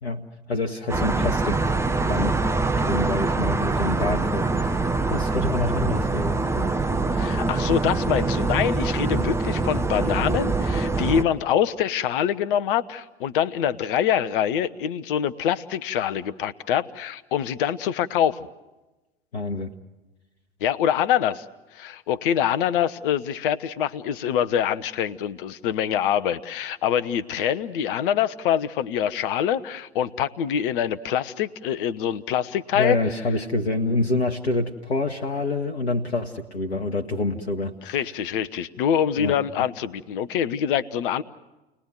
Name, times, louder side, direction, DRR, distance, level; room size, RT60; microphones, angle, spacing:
voice 1, 0.0-1.7 2.1-2.3 2.8-6.7 9.1-9.3 19.3-19.7 32.7-37.9 39.2-39.7, left 2 dB, 80° left, 4 dB, 1.2 m, -27 dB
sound 1, 0.9-11.2, right 3 dB, 10° right, 1.0 m, -24 dB
voice 2, 7.1-18.5 20.6-21.4 21.7-33.0 37.8-41.2, left 9 dB, 55° left, 13 dB, 0.9 m, -25 dB
29.5 x 20.5 x 7.7 m, 1.1 s
figure-of-eight pair, 80°, 31 cm